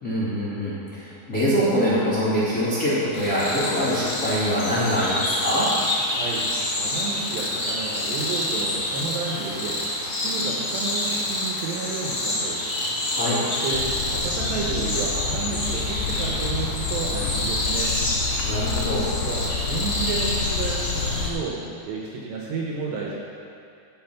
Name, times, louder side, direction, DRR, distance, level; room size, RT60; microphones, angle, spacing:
voice 1, 0.0-5.7 13.1-13.4 18.4-19.0, equal, 30° left, -12 dB, 1.6 m, -24 dB
sound 1, 3.1-21.3, left 1 dB, 55° left, 1.7 m, -28 dB
voice 2, 6.1-6.5 6.7-12.6 13.4-17.9 19.1-21.6 21.9-23.1, right 4 dB, 75° right, -3 dB, 2.8 m, -31 dB
sound 2, 13.7-21.3, left 5 dB, 80° left, 3.3 m, -29 dB
15.0 x 5.3 x 5.9 m, 2.5 s
omnidirectional pair, 5.8 m